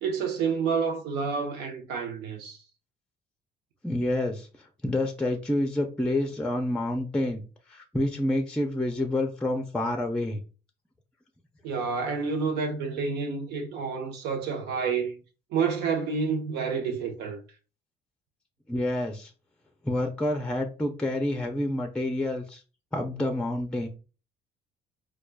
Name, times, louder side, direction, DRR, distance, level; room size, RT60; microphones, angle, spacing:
voice 1, 0.0-2.6 11.6-15.2 15.5-17.4, right 5 dB, 85° right, 0.8 m, -29 dB
voice 2, 3.8-7.4 7.7-10.4 18.7-19.3 19.8-22.6 22.9-23.9, left 1 dB, 5° left, 0.5 m, -28 dB
4.7 x 2.3 x 2.2 m
cardioid pair, 110°, 17 cm